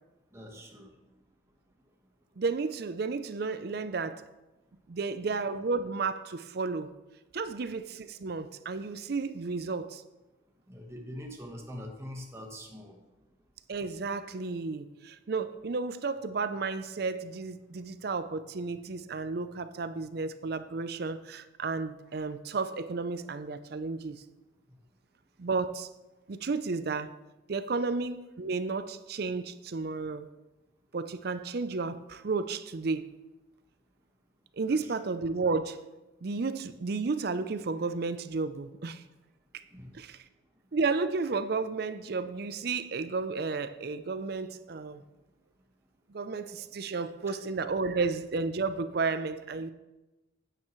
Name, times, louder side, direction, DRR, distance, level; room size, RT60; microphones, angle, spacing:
voice 1, 0.3-0.9 10.7-13.0 34.7-34.9 39.7-39.9 47.3-47.4, equal, 15° right, 1 dB, 1.2 m, -43 dB
voice 2, 2.4-4.2 4.9-6.9 7.3-10.0 13.7-24.2 25.4-25.9 26.3-27.2 27.5-30.3 30.9-33.1 34.6-35.8 36.2-39.0 39.5-39.6 39.9-40.2 40.7-45.0 46.1-49.7, right 4 dB, 55° right, 12 dB, 0.5 m, -32 dB
9.1 x 9.0 x 3.1 m, 1.1 s
head